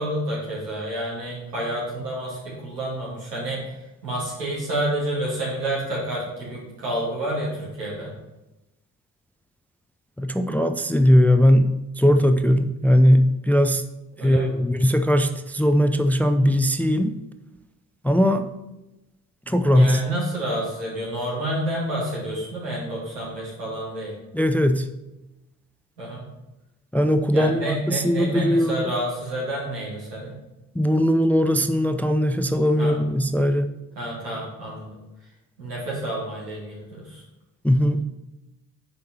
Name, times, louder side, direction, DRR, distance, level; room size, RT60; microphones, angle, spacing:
voice 1, 0.0-8.1 14.1-14.5 19.7-24.1 26.0-26.2 27.3-30.3 32.8-33.0 33.9-35.0 35.6-37.2, right 1 dB, 90° right, -6 dB, 2.6 m, -29 dB
voice 2, 10.2-13.8 14.2-17.2 18.0-18.5 19.5-20.0 24.3-24.9 26.9-28.9 30.7-33.7 37.6-38.0, equal, 5° left, 9 dB, 0.4 m, -19 dB
8.3 x 5.0 x 4.3 m, 0.98 s
hypercardioid pair, 40°, 47 cm